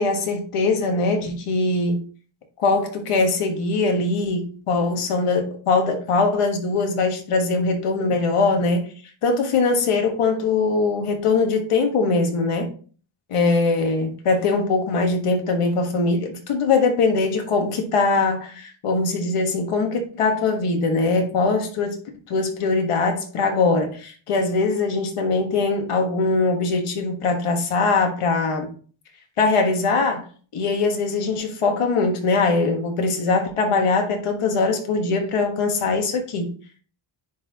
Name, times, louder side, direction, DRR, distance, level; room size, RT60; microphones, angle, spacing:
voice 1, 0.0-2.0 2.6-8.8 9.2-12.7 13.3-22.0 22.3-28.7 29.4-30.3 30.5-36.5, left 3 dB, 90° left, 4 dB, 1.5 m, -21 dB
10.0 x 4.1 x 2.8 m, 0.41 s
wide cardioid pair, 120°, 50 cm